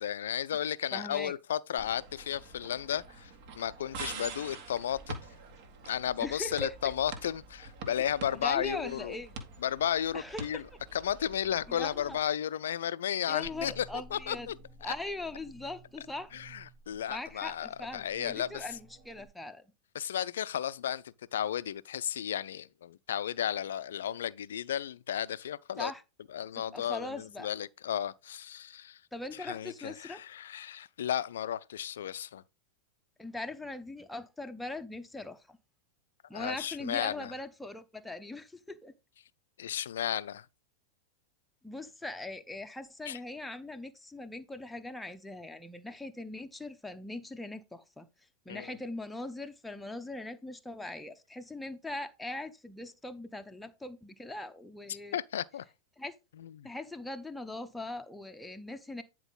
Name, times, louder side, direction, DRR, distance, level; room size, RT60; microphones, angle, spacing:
voice 1, 0.0-3.3 3.6-5.2 5.8-9.2 9.6-10.6 10.9-13.9 14.1-14.5 16.3-18.6 19.9-21.0 21.3-25.9 26.3-29.0 29.4-32.4 36.3-37.3 39.6-40.5 43.1-43.2 48.5-48.8 54.9-55.6 56.4-56.7, left 10 dB, 60° left, 0.4 m, -34 dB
voice 2, 0.9-1.3 6.2-6.9 8.3-9.3 10.1-10.6 11.7-12.2 13.3-14.5 14.8-16.3 17.1-19.6 25.8-26.0 26.7-27.5 29.1-30.2 33.2-35.6 36.3-38.9 41.6-48.1 48.5-55.2 56.0-56.1 56.6-59.0, left 2 dB, 5° left, 0.8 m, -40 dB
sound 1, 1.8-12.3, right 3 dB, 45° right, 1.7 m, -46 dB
sound 2, 13.4-19.3, right 2 dB, 30° right, 0.8 m, -54 dB
9.7 x 4.6 x 3.9 m
figure-of-eight pair, 90°, 0 cm